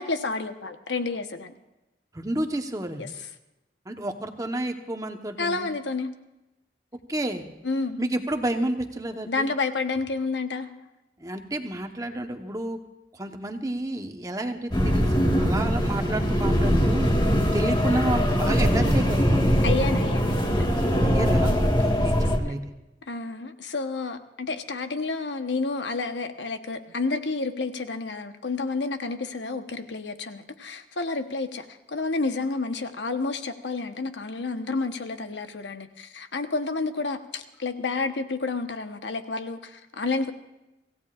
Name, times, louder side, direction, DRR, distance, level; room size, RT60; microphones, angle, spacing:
voice 1, 0.0-1.5 3.0-3.1 5.4-6.1 7.6-8.1 9.3-10.8 19.6-20.6 23.1-40.3, left 3 dB, 90° left, 7 dB, 1.1 m, -30 dB
voice 2, 2.1-3.1 3.9-5.7 7.1-7.4 8.0-9.5 11.2-12.8 13.1-17.1 17.5-19.5 21.0-22.6, right 1 dB, 20° right, 5 dB, 1.1 m, -30 dB
sound 1, 14.7-22.4, equal, 25° left, 1.6 m, -22 dB
26.0 x 16.0 x 2.5 m, 0.97 s
head